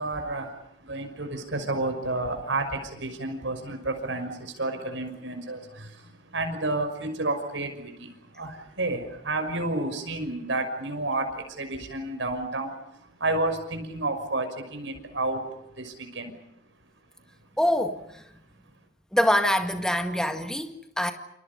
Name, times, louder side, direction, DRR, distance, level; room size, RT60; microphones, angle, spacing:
voice 1, 0.0-17.5 18.5-18.7, right 2 dB, 80° right, 6.0 m, -31 dB
voice 2, 17.6-18.2 19.1-21.1, equal, 5° left, 2.0 m, -25 dB
29.0 x 28.0 x 5.5 m
head